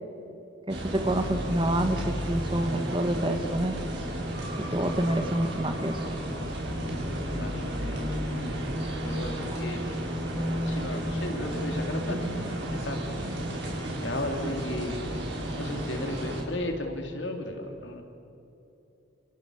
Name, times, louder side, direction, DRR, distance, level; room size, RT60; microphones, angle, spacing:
voice 1, 0.7-3.7 4.7-6.1, right 1 dB, 25° right, 6 dB, 2.1 m, -27 dB
sound 1, 0.7-16.4, equal, 60° right, 7.0 m, -32 dB
voice 2, 7.1-8.1 9.0-10.0 10.3-12.2 12.5-13.2 14.0-15.0 15.6-18.0, left 1 dB, 65° left, 3 dB, 3.9 m, -35 dB
29.0 x 28.5 x 6.9 m, 2.9 s
head